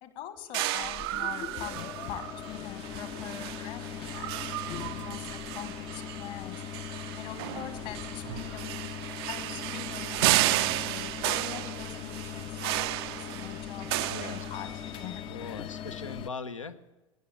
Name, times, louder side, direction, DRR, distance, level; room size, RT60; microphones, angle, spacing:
voice 1, 0.0-6.6 7.1-8.9 9.3-15.8, left 10 dB, 50° left, 10 dB, 1.6 m, -43 dB
sound 1, 0.5-15.0, right 17 dB, 55° right, 0.5 m, -33 dB
sound 2, 0.6-16.3, left 10 dB, 35° left, 0.6 m, -40 dB
voice 2, 4.9-5.2 14.0-14.4 15.3-16.9, left 4 dB, 85° left, 9 dB, 0.9 m, -41 dB
19.5 x 9.4 x 7.1 m, 1.1 s
figure-of-eight pair, 85°, 16 cm